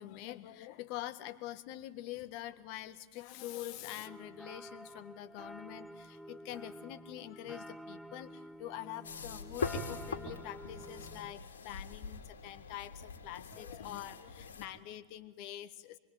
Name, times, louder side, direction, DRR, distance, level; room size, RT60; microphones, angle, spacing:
voice 1, 0.0-16.0, left 13 dB, 45° left, 12 dB, 1.6 m, -45 dB
sound 1, 4.0-11.3, right 1 dB, ahead, 0.9 m, -50 dB
sound 2, 9.0-14.7, left 5 dB, 65° left, 3.1 m, -42 dB
26.5 x 23.0 x 9.4 m, 1.3 s
figure-of-eight pair, 90°, 0 cm